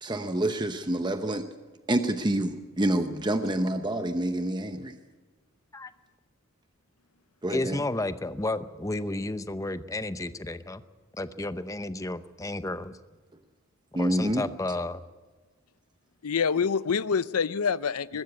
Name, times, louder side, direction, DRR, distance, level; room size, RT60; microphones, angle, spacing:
voice 1, 0.0-1.5 1.9-5.0 7.4-7.8 13.9-14.5, right 1 dB, 20° right, 8 dB, 0.8 m, -27 dB
voice 2, 7.5-10.8 11.2-13.0 14.0-15.0, left 2 dB, 15° left, 12 dB, 0.7 m, -32 dB
voice 3, 16.2-18.2, left 6 dB, 90° left, 17 dB, 0.6 m, -26 dB
22.0 x 13.0 x 9.6 m, 1.3 s
head